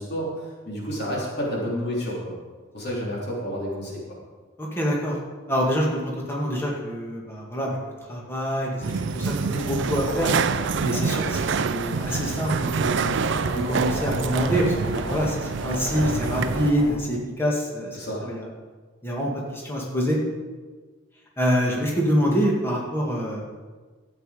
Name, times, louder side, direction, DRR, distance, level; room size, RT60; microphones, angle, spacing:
voice 1, 0.0-2.3 2.7-4.0 9.4-9.7 17.9-18.2, equal, 55° left, -4 dB, 3.3 m, -30 dB
voice 2, 4.6-5.2 5.5-7.7 8.1-9.3 9.7-10.3 10.8-13.1 13.5-15.4 15.6-17.9 18.2-18.5 19.0-20.2 21.4-23.4, equal, 10° left, -3 dB, 1.9 m, -25 dB
sound 1, 8.8-16.7, right 5 dB, 60° right, 0.4 m, -27 dB
sound 2, 9.6-17.0, left 1 dB, 80° left, 3.2 m, -36 dB
12.5 x 8.2 x 4.9 m, 1.4 s
head